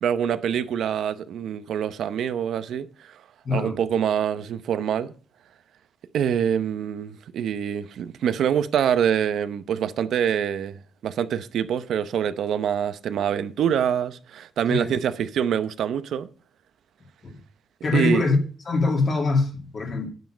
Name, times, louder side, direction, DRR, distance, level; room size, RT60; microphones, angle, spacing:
voice 1, 0.0-3.2 3.5-5.1 6.1-10.7 11.0-16.3 17.9-18.3, right 8 dB, 70° right, 0.7 m, -25 dB
voice 2, 3.4-3.8 14.7-14.9 17.2-17.3 17.8-18.4 18.7-20.1, left 3 dB, 35° left, 2.3 m, -23 dB
9.6 x 9.3 x 5.0 m
wide cardioid pair, 165°, 0 cm